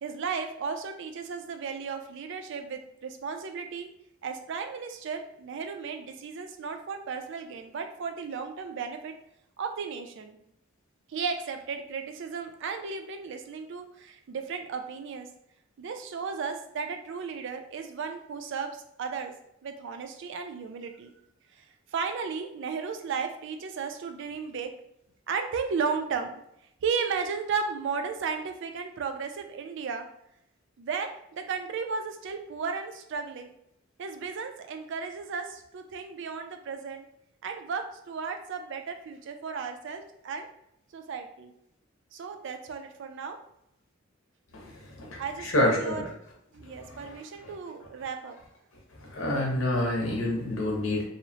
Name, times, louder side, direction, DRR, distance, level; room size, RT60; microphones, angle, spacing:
voice 1, 0.0-3.9 4.2-9.1 9.6-10.4 11.1-15.3 15.8-19.3 19.6-21.1 21.6-21.7 21.9-24.7 25.3-26.4 26.8-30.1 30.8-33.6 34.0-37.1 37.4-40.5 40.9-41.5 42.1-43.4 45.2-46.1 46.6-48.4, right 5 dB, 65° right, 6 dB, 0.4 m, -34 dB
voice 2, 44.5-46.1 46.7-47.5 48.9-51.0, left 1 dB, 80° left, -1 dB, 0.8 m, -29 dB
2.7 x 2.0 x 2.8 m, 0.77 s
head